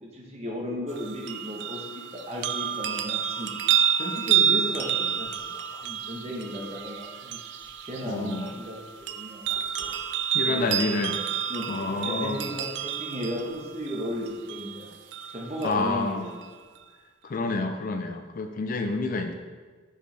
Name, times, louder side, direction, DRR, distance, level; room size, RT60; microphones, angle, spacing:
voice 1, 0.0-3.5 4.0-7.4 7.8-10.0 10.4-10.7 11.5-14.9 15.3-16.4, equal, 30° right, -2 dB, 1.0 m, -35 dB
sound 1, 0.9-15.9 16.4-16.5, right 9 dB, 60° right, 0.3 m, -29 dB
voice 2, 8.0-8.5 10.3-11.2 11.7-12.4 15.6-16.2 17.2-19.4, left 3 dB, 40° left, 6 dB, 0.4 m, -28 dB
6.6 x 5.1 x 3.3 m, 1.5 s
head